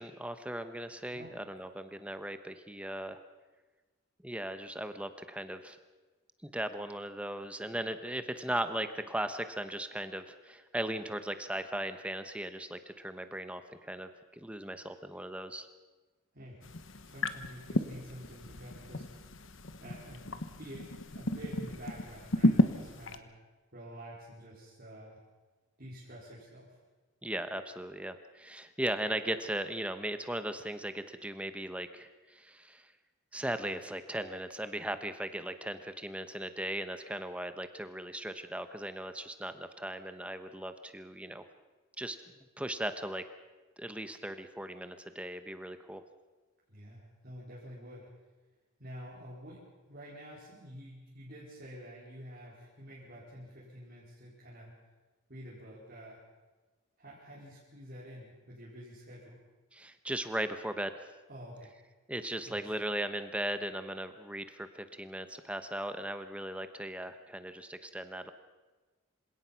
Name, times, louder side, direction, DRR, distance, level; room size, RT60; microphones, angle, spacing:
voice 1, 0.0-3.2 4.2-5.8 6.4-14.1 14.4-15.7 27.2-32.8 33.3-41.4 42.0-42.2 42.6-43.2 43.8-46.0 59.7-60.9 62.1-68.3, right 1 dB, 5° right, 9 dB, 1.0 m, -38 dB
sound 1, 16.6-23.2, left 1 dB, 60° left, 1.3 m, -33 dB
voice 2, 17.0-19.3 19.8-23.3 23.7-25.2 25.8-26.8 46.7-48.1 48.8-49.6 49.9-54.7 55.3-56.2 57.0-59.4 61.3-61.7 62.5-62.6, equal, 45° right, -7 dB, 4.6 m, -48 dB
27.0 x 17.5 x 5.9 m, 1.3 s
head